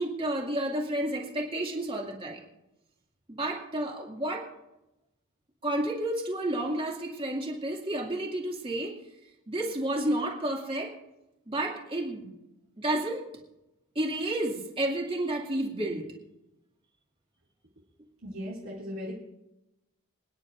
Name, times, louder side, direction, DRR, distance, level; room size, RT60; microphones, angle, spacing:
voice 1, 0.0-2.4 3.3-4.5 5.6-8.9 9.5-10.9 11.5-12.3 12.8-13.3 14.0-16.0, right 1 dB, 25° right, 0 dB, 2.3 m, -31 dB
voice 2, 18.2-19.1, equal, 65° right, -5 dB, 2.7 m, -37 dB
26.5 x 10.0 x 2.6 m, 0.92 s
head